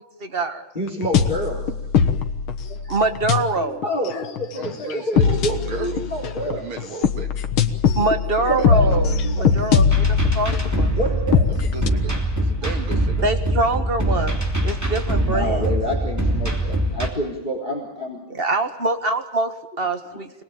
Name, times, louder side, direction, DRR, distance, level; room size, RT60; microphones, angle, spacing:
voice 1, 0.2-0.6 2.9-3.8 8.0-10.9 13.2-14.4 14.6-15.7 18.3-20.4, right 2 dB, 30° right, 6 dB, 1.8 m, -24 dB
voice 2, 0.7-1.7 2.7-2.8 3.8-6.7 8.5-9.6 10.9-11.5 15.2-18.2, equal, 20° left, 0 dB, 4.3 m, -28 dB
sound 1, 1.0-11.9, left 6 dB, 85° left, 2.1 m, -21 dB
voice 3, 4.5-6.1 6.4-7.4 8.3-8.7 11.5-13.3, right 4 dB, 85° right, 5 dB, 2.7 m, -35 dB
sound 2, 9.9-17.1, right 1 dB, 10° right, 3.0 m, -23 dB
26.5 x 19.5 x 9.0 m, 0.92 s
omnidirectional pair, 2.2 m